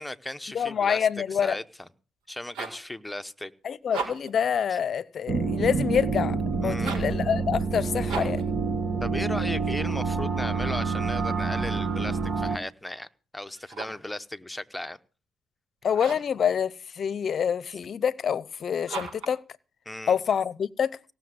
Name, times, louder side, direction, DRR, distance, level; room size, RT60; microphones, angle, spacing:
voice 1, 0.0-1.9 2.3-3.5 4.7-4.8 6.6-7.0 9.0-15.0 19.9-20.2, left 1 dB, 10° left, 0.9 m, -36 dB
voice 2, 0.5-1.6 3.6-8.4 15.8-19.4 20.1-20.9, left 7 dB, 55° left, 0.7 m, -26 dB
sound 1, 2.2-2.9 3.8-4.4 6.7-7.2 8.1-8.5 13.5-14.1 15.9-16.4 18.9-19.4, right 5 dB, 80° right, 5.1 m, -36 dB
sound 2, 5.3-12.6, right 4 dB, 50° right, 1.3 m, -27 dB
18.0 x 6.7 x 7.8 m
cardioid pair, 90°, 0 cm